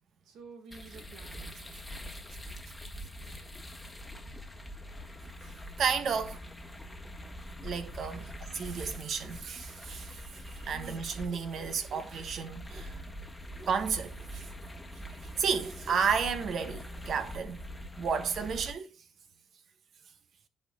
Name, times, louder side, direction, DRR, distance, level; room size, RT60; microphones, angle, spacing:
voice 1, 0.2-1.6 8.2-8.3 10.7-11.3, right 4 dB, 85° right, 1.7 m, -51 dB
sound 1, 0.7-18.7, left 1 dB, 10° left, 1.3 m, -44 dB
voice 2, 5.8-6.4 7.6-8.3 8.5-13.0 13.7-14.5 15.1-17.6 18.0-18.9, right 6 dB, 65° right, 1.1 m, -32 dB
sound 2, 11.3-11.5 11.9-12.1 12.7-12.9 13.5-13.8 14.7-14.8 15.6-16.1, right 3 dB, 40° right, 1.1 m, -50 dB
11.0 x 4.5 x 2.3 m
cardioid pair, 90°, 0 cm